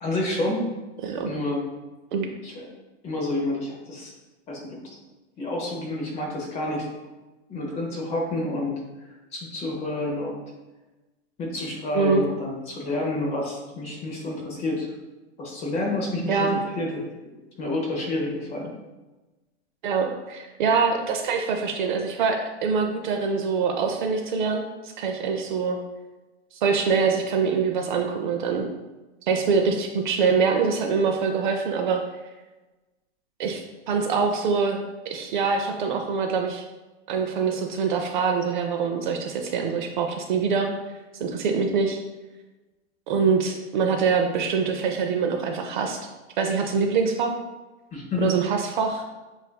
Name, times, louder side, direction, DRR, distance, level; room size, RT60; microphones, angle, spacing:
voice 1, 0.0-0.6 1.2-1.6 2.4-2.7 3.0-4.1 4.5-5.0 5.4-6.9 7.5-10.4 11.4-14.9 15.4-16.5 16.8-17.1 17.6-18.7 47.9-48.3, left 2 dB, 20° left, -2 dB, 0.7 m, -29 dB
voice 2, 11.9-12.2 16.3-16.6 19.8-22.4 22.6-25.8 26.6-28.7 29.3-32.0 33.4-33.6 33.9-36.6 37.1-40.7 41.2-42.0 43.1-46.0 46.4-47.3 48.2-49.0, right 5 dB, 45° right, 3 dB, 0.5 m, -24 dB
7.5 x 2.6 x 2.2 m, 1.1 s
hypercardioid pair, 150°, 34 cm